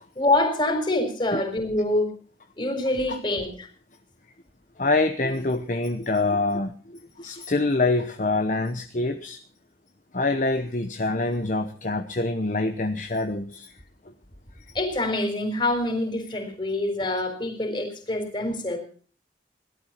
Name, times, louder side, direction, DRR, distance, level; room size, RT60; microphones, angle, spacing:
voice 1, 0.2-2.1 2.6-3.7 14.7-18.8, left 1 dB, 30° left, 4 dB, 4.2 m, -25 dB
voice 2, 4.8-9.4 10.1-13.7, left 2 dB, 45° left, 6 dB, 1.0 m, -25 dB
18.0 x 12.5 x 5.8 m, 0.43 s
head